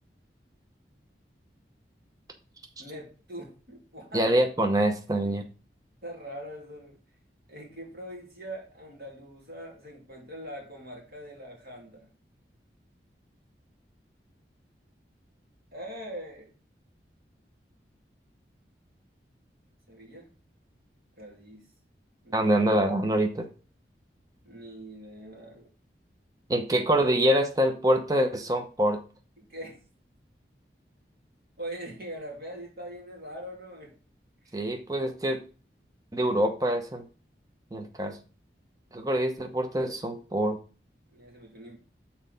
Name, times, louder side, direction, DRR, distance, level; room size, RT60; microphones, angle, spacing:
voice 1, 2.8-4.3 6.0-7.0 7.5-12.1 15.7-16.5 19.9-20.3 21.2-21.7 22.2-22.8 24.4-25.7 29.4-29.8 31.6-34.0 34.4-34.5 41.1-41.8, right 1 dB, 55° right, -1 dB, 2.6 m, -42 dB
voice 2, 4.1-5.4 22.3-23.5 26.5-29.0 34.5-35.4 36.1-37.0 37.7-38.1 38.9-40.6, right 1 dB, 20° right, 5 dB, 0.8 m, -25 dB
6.4 x 4.4 x 5.2 m, 0.36 s
head